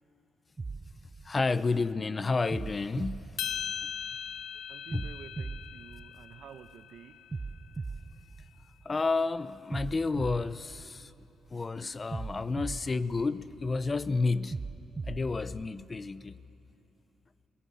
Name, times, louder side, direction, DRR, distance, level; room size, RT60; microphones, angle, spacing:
sound 1, 0.6-1.9 2.5-4.2 4.9-6.7 7.3-9.1 9.7-11.5 12.1-13.8 14.5-15.9, right 4 dB, 25° right, 0.6 m, -40 dB
voice 1, 1.2-3.4 4.9-5.1 8.8-11.1 11.5-14.6 15.0-16.4, left 3 dB, 30° left, 0.6 m, -30 dB
sound 2, 3.4-7.8, left 8 dB, 70° left, 1.0 m, -40 dB
voice 2, 4.7-7.2, right 8 dB, 70° right, 1.1 m, -50 dB
22.5 x 21.0 x 8.7 m
cardioid pair, 90°, 0 cm